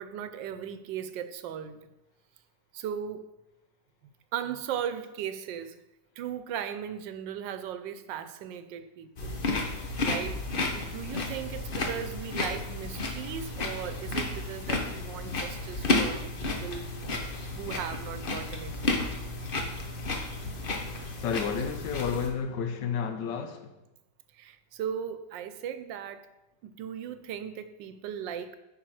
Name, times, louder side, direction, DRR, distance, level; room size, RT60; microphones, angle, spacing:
voice 1, 0.0-1.8 2.7-3.3 4.3-5.8 6.2-9.4 10.0-10.4 10.7-16.8 17.5-19.0 24.3-26.3 26.6-28.6, right 9 dB, 90° right, 1.3 m, -37 dB
sound 1, 9.2-22.3, left 3 dB, 40° left, 0.9 m, -32 dB
voice 2, 21.2-23.7, left 7 dB, 80° left, 1.5 m, -31 dB
8.6 x 5.2 x 4.8 m
omnidirectional pair, 1.9 m